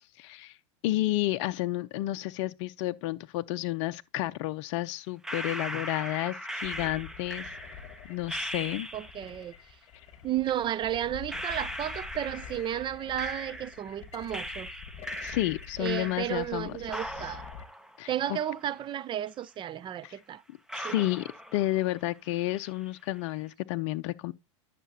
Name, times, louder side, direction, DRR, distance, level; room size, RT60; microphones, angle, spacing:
voice 1, 0.2-0.6 0.8-7.6 8.1-8.9 15.2-17.3 18.0-18.4 20.0-20.2 20.7-24.3, left 16 dB, 60° left, 0.6 m, -31 dB
sound 1, 5.2-9.4 10.5-10.6 11.3-14.0 14.3-16.6 16.9-19.0 19.3-19.4 20.0-20.1 20.7-22.0 22.3-22.8, equal, 5° right, 1.2 m, -39 dB
sound 2, 6.6-17.7, left 8 dB, 40° left, 1.6 m, -47 dB
voice 2, 8.9-9.5 10.2-14.7 15.8-17.5 18.1-20.4 20.8-21.0, right 11 dB, 30° right, 0.6 m, -33 dB
11.0 x 6.7 x 2.7 m
hypercardioid pair, 100°, 16 cm